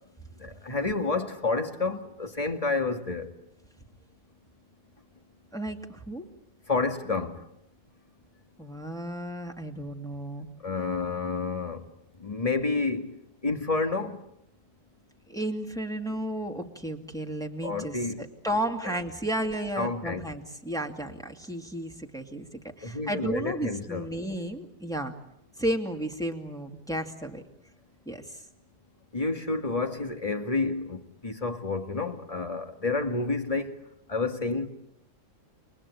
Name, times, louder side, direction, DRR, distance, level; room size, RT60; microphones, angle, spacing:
voice 1, 0.4-3.3 6.7-7.4 10.6-11.8 12.2-13.1 13.4-14.2 17.6-18.2 18.8-18.9 19.8-20.3 22.8-24.1 29.1-33.8 34.1-34.7, left 3 dB, 25° left, 2.1 m, -29 dB
voice 2, 5.5-6.2 8.6-10.5 15.3-22.5 22.8-25.1 25.6-27.4 28.1-28.4, right 1 dB, 5° left, 2.4 m, -33 dB
29.5 x 24.0 x 8.6 m
omnidirectional pair, 1.4 m